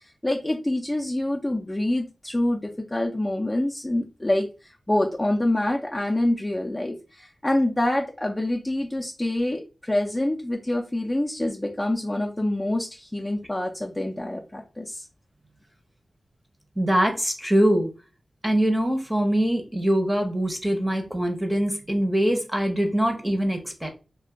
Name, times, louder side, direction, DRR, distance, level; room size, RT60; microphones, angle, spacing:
voice 1, 0.2-4.5 4.9-15.1, left 1 dB, 15° left, 0 dB, 0.5 m, -26 dB
voice 2, 16.8-17.9 18.4-23.9, equal, 10° right, 4 dB, 0.8 m, -23 dB
2.4 x 2.2 x 3.6 m, 0.31 s
cardioid pair, 55°, 0 cm